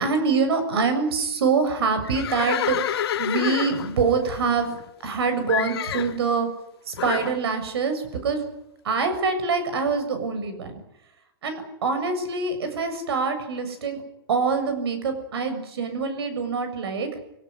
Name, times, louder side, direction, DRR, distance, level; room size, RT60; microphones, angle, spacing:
voice 1, 0.0-4.7 5.0-6.5 6.9-8.4 8.8-10.8 11.4-14.0 14.3-17.1, right 4 dB, 85° right, 8 dB, 7.2 m, -25 dB
Livestock farm animals working animals, 2.0-5.1 5.5-6.2 7.0-7.4, left 10 dB, 80° left, 1.6 m, -29 dB
26.0 x 18.0 x 9.9 m, 0.84 s
hypercardioid pair, 145°, 13 cm